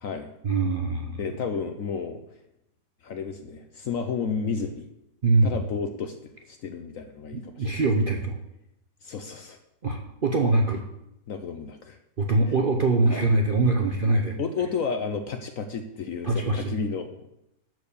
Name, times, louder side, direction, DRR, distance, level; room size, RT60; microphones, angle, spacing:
voice 1, 0.4-1.2 5.2-5.5 7.6-8.3 9.8-10.8 12.2-14.4 16.2-16.7, right 2 dB, 45° right, 2 dB, 0.7 m, -23 dB
voice 2, 1.2-2.2 3.0-4.9 5.4-7.7 9.0-9.6 11.3-12.0 13.1-13.3 14.4-17.3, left 5 dB, 60° left, 7 dB, 0.9 m, -32 dB
12.5 x 4.6 x 6.9 m, 0.84 s
omnidirectional pair, 1.9 m